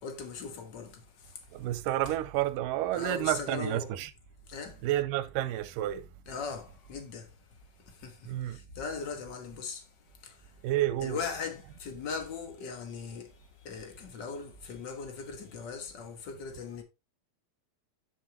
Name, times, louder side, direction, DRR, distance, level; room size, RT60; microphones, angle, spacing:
voice 1, 0.0-1.4 2.9-3.9 4.5-4.8 6.3-7.3 7.9-9.9 10.2-10.5 11.0-16.8, left 5 dB, 65° left, 1.0 m, -39 dB
voice 2, 1.5-4.1 4.8-6.1 8.3-8.6 10.6-11.2, right 13 dB, 85° right, 2.3 m, -30 dB
9.2 x 6.3 x 2.8 m
omnidirectional pair, 4.0 m